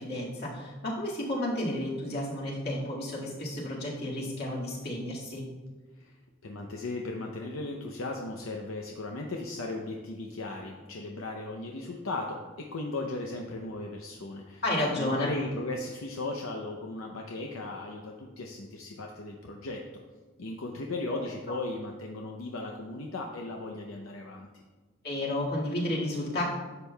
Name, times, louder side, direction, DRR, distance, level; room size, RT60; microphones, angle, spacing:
voice 1, 0.0-5.4 14.6-15.3 21.1-21.2 25.0-26.4, left 1 dB, 50° left, -4 dB, 1.9 m, -32 dB
voice 2, 6.4-14.6 15.0-19.8 20.4-24.5, left 2 dB, 75° left, 1 dB, 0.7 m, -36 dB
11.0 x 7.3 x 2.3 m, 1.3 s
head